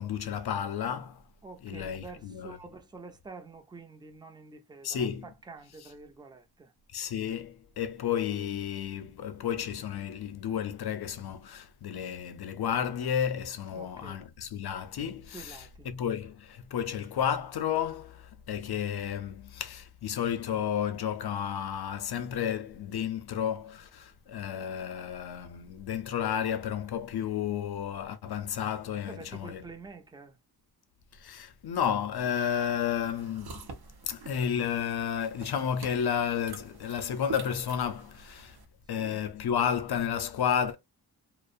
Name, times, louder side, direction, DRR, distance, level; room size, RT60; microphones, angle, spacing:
voice 1, 0.0-1.2 1.6-2.6 4.8-5.2 6.9-29.6 31.1-33.6 34.1-38.6 38.9-40.8, left 8 dB, 75° left, 0.5 m, -32 dB
voice 2, 1.4-6.7 13.7-14.3 15.3-15.9 29.1-30.4 39.0-39.2, right 3 dB, 10° right, 0.4 m, -47 dB
sound 1, 33.0-38.6, right 4 dB, 70° right, 0.7 m, -46 dB
2.4 x 2.0 x 2.5 m
wide cardioid pair, 80°, 39 cm